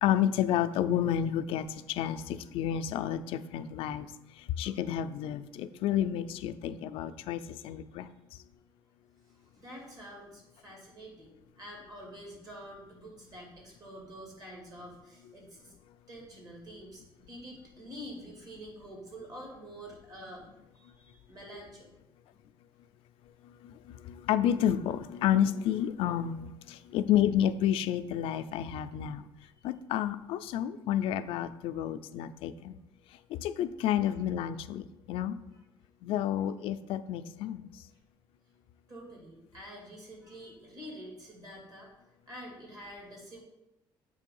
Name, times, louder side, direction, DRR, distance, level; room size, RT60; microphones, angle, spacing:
voice 1, 0.0-4.1 4.4-8.1 23.6-29.3 29.6-32.8 33.3-35.4 36.0-37.7, left 10 dB, 85° left, 11 dB, 0.4 m, -30 dB
voice 2, 7.4-7.7 9.3-15.7 16.1-21.9 38.9-41.9 42.3-43.4, equal, 45° right, -1 dB, 2.2 m, -47 dB
7.5 x 3.2 x 5.3 m, 0.94 s
cardioid pair, 150°, 9 cm